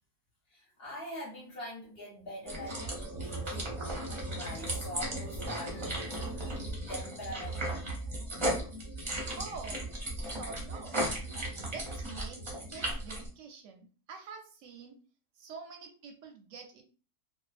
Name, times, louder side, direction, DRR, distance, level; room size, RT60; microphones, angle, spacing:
voice 1, 0.5-2.8 3.1-3.8 4.3-8.0, equal, 45° left, -4 dB, 1.0 m, -44 dB
sound 1, 2.5-13.3, right 1 dB, 30° right, 0.6 m, -36 dB
voice 2, 9.3-9.8 10.2-11.0 11.6-12.4 12.7-15.0 15.3-16.8, right 5 dB, 65° right, 4 dB, 0.8 m, -46 dB
2.6 x 2.1 x 2.4 m, 0.37 s
omnidirectional pair, 1.7 m